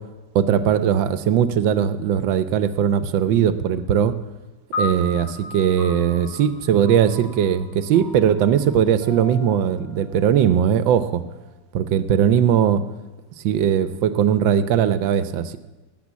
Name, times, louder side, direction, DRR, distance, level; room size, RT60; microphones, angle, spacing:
voice 1, 0.3-4.1 4.8-11.2 11.7-12.8 13.4-15.6, right 9 dB, 90° right, 13 dB, 1.5 m, -19 dB
sound 1, 4.7-11.2, left 2 dB, 85° left, 4.2 m, -35 dB
18.0 x 6.9 x 8.4 m, 1.2 s
omnidirectional pair, 2.0 m